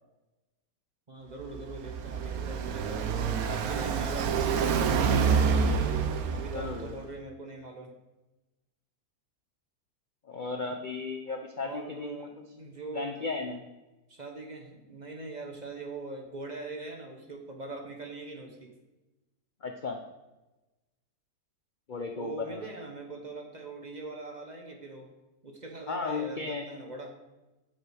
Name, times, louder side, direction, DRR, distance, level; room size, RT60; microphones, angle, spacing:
voice 1, 1.1-3.1 3.5-5.7 6.3-7.9 11.6-13.1 14.1-18.7 22.2-25.1 25.4-27.1, right 2 dB, 35° right, 1 dB, 0.9 m, -41 dB
Car passing by, 1.4-7.0, right 6 dB, 70° right, 1.2 m, -27 dB
voice 2, 6.5-7.0 10.2-12.2 12.9-13.6 19.6-20.0 21.9-22.7 25.9-26.6, left 4 dB, 60° left, 4 dB, 0.5 m, -35 dB
8.0 x 7.3 x 4.8 m, 1.1 s
omnidirectional pair, 1.7 m